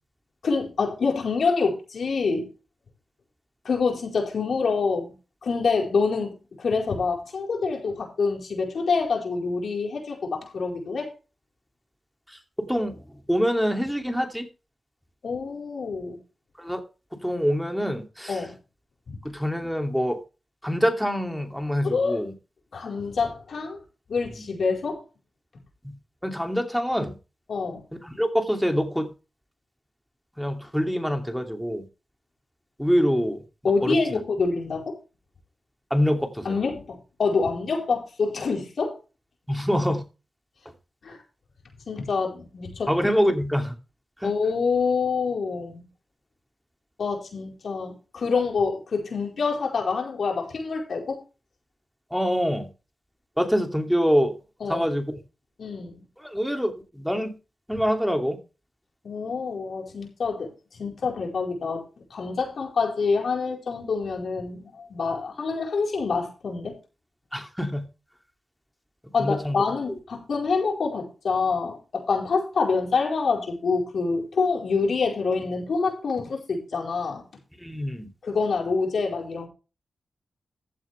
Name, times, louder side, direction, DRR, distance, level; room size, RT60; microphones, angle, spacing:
voice 1, 0.4-2.5 3.6-5.1 5.4-11.1 15.2-16.2 18.3-18.5 19.1-19.2 21.8-22.2 22.7-23.8 24.1-25.0 27.5-27.8 33.6-35.0 36.4-38.9 41.0-41.2 41.9-42.9 44.2-45.8 47.0-51.2 54.6-54.9 55.6-56.0 59.0-61.8 62.1-66.8 69.1-77.2 78.2-79.5, left 4 dB, 75° left, 4.5 m, -26 dB
voice 2, 12.3-14.5 16.6-16.8 17.1-18.5 19.2-20.2 20.6-22.3 24.3-24.4 25.8-26.0 26.2-27.1 28.0-29.1 30.4-31.9 32.8-34.2 35.9-36.6 39.5-40.0 42.9-43.8 44.2-44.3 52.1-52.7 53.4-54.4 54.7-55.2 56.2-57.3 57.7-58.4 67.3-67.8 69.2-69.6 77.6-78.1, equal, ahead, 2.7 m, -25 dB
15.0 x 8.0 x 3.4 m
cardioid pair, 70°, 0 cm